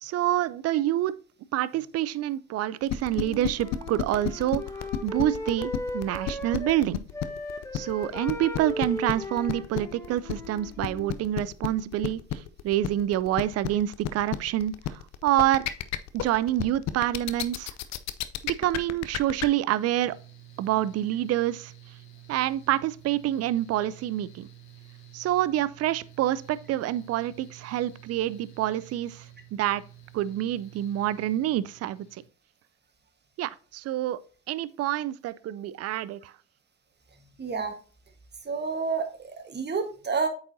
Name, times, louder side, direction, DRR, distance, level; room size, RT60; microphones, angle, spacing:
voice 1, 0.0-1.1 1.5-4.6 5.0-7.0 7.7-15.7 16.1-17.7 18.4-20.2 20.6-21.7 22.3-24.5 25.1-29.3 29.5-29.8 30.1-32.2 33.4-34.2 34.5-36.3, right 13 dB, 55° right, 0.5 m, -27 dB
sound 1, 2.9-19.5, left 11 dB, 60° left, 0.6 m, -31 dB
Wind instrument woodwind instrument, 3.1-6.8 7.1-11.2, left 1 dB, 10° left, 1.5 m, -37 dB
Mechanical fan, 19.7-32.3, right 10 dB, 80° left, 1.2 m, -50 dB
voice 2, 37.4-37.7 38.4-40.3, right 5 dB, 35° right, 1.4 m, -29 dB
8.2 x 4.8 x 2.7 m
hypercardioid pair, 55°, 31 cm